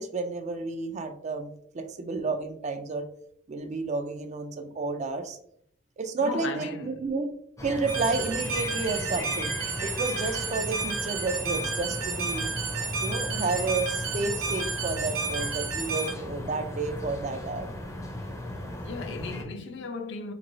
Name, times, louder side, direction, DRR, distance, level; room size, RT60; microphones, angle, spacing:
voice 1, 0.0-3.1 3.5-5.4 6.0-7.3 7.6-9.5 9.8-12.5 13.0-17.7, right 3 dB, 35° right, 0.4 m, -31 dB
voice 2, 6.2-7.1 18.8-20.3, left 4 dB, 65° left, 0.5 m, -36 dB
Seagulls distant, 7.6-19.4, left 1 dB, 15° left, 0.5 m, -36 dB
sound 1, 7.9-16.1, right 4 dB, 85° right, 0.7 m, -32 dB
3.7 x 3.0 x 2.6 m
head